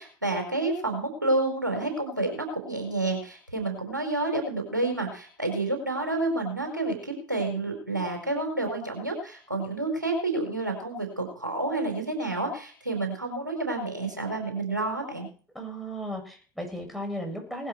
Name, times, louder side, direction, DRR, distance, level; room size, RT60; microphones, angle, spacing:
voice 1, 0.0-15.3, right 2 dB, 90° right, 3 dB, 4.6 m, -29 dB
voice 2, 15.5-17.7, equal, ahead, 3 dB, 7.8 m, -35 dB
19.0 x 12.0 x 4.7 m, 0.40 s
figure-of-eight pair, 70°, 10 cm